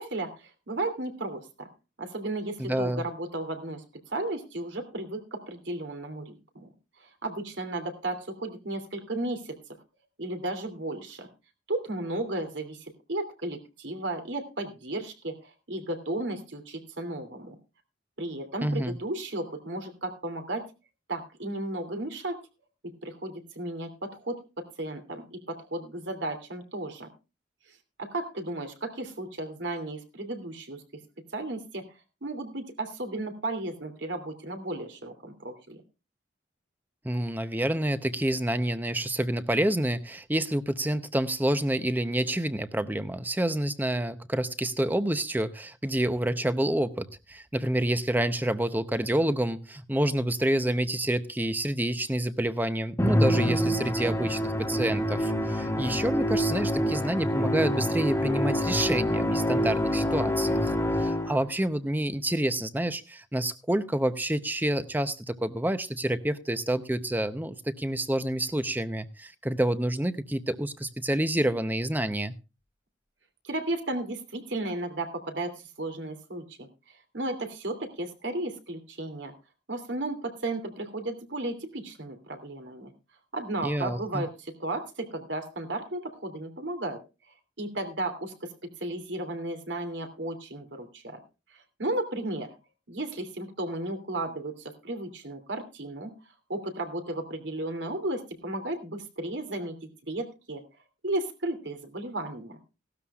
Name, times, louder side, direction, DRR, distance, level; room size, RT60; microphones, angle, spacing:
voice 1, 0.0-1.7 2.0-6.7 7.0-9.6 10.2-11.3 11.7-17.5 18.2-20.7 21.1-22.3 23.0-24.4 24.8-27.1 28.0-31.0 31.3-31.9 32.2-35.8 73.4-76.7 77.1-79.3 79.7-82.9 83.3-87.0 87.6-88.5 88.8-91.2 91.5-92.5 92.9-96.1 96.5-100.6 101.0-102.6, right 2 dB, 75° right, 6 dB, 2.8 m, -34 dB
voice 2, 2.6-3.0 18.6-19.0 37.0-72.4 83.6-84.3, right 1 dB, 10° right, 11 dB, 0.7 m, -28 dB
Musical instrument, 53.0-61.5, equal, 15° left, 1.3 m, -26 dB
17.0 x 12.5 x 2.4 m, 0.29 s
head